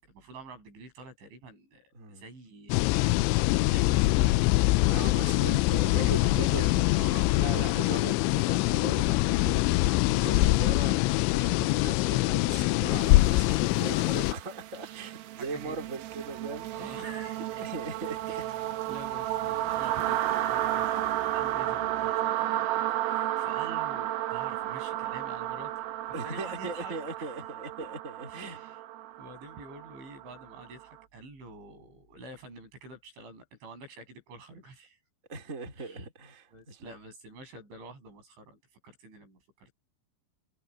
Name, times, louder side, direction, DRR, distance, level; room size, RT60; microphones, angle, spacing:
voice 1, 0.0-3.1 3.7-5.5 5.9-8.2 15.4-15.8 16.7-17.6 18.3-18.6 18.9-25.8 26.2-27.3 28.3-28.8 29.2-35.0 35.8-36.1 36.5-39.7, right 2 dB, 70° right, 10.5 m, -47 dB
sound 1, 2.7-14.3, left 20 dB, 85° left, 2.7 m, -24 dB
voice 2, 4.8-6.6 7.3-17.1 17.6-18.3 26.1-28.6 35.3-36.9, right 3 dB, 15° right, 3.9 m, -39 dB
sound 2, 13.1-30.9, right 13 dB, 90° right, 4.4 m, -33 dB
omnidirectional pair, 5.7 m